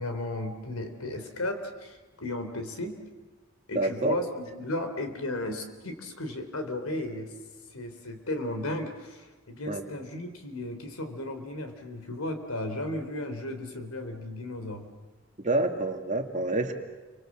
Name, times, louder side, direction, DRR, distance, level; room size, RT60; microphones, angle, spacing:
voice 1, 0.0-2.9 3.7-7.3 7.7-14.9, left 1 dB, 85° left, 7 dB, 3.9 m, -35 dB
voice 2, 3.7-4.2 9.7-9.8 15.4-16.7, right 2 dB, 35° right, 4 dB, 2.4 m, -27 dB
29.5 x 25.0 x 7.5 m, 1.3 s
head